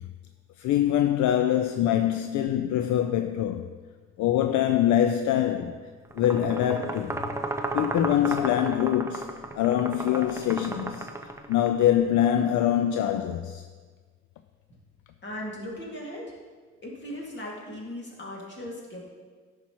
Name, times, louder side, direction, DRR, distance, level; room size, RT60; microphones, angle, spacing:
voice 1, 0.6-3.7 4.2-5.9 6.1-7.2 7.7-11.1 11.5-13.6, left 11 dB, 70° left, 0.4 m, -24 dB
sound 1, 6.1-11.8, right 2 dB, 10° right, 0.6 m, -34 dB
voice 2, 15.2-16.2 16.8-19.0, left 1 dB, 35° left, 2.2 m, -38 dB
10.5 x 5.9 x 3.0 m
cardioid pair, 90°, 30 cm